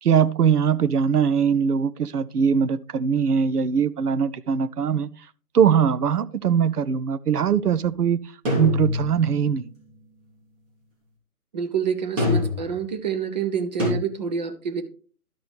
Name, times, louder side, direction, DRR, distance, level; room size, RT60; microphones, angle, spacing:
voice 1, 0.0-5.1 5.5-8.2 8.6-9.7, right 7 dB, 80° right, 0.6 m, -21 dB
sound 1, 8.4-9.4 12.2-12.8 13.8-13.9, left 2 dB, 55° right, 2.8 m, -24 dB
voice 2, 11.5-14.8, right 7 dB, 30° right, 0.7 m, -27 dB
12.0 x 4.8 x 3.2 m
figure-of-eight pair, 135°, 45 cm